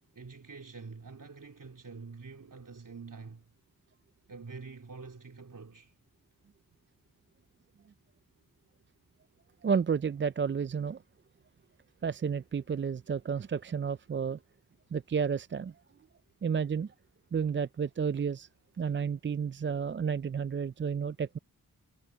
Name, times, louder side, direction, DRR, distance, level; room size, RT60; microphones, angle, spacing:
voice 1, 0.1-3.5 4.3-5.9, right 4 dB, 55° right, 3.4 m, -46 dB
voice 2, 9.6-11.0 12.0-14.4 14.9-15.7 16.4-16.9 17.3-18.5 18.8-21.4, right 6 dB, 30° right, 0.5 m, -31 dB
cardioid pair, 40°, 37 cm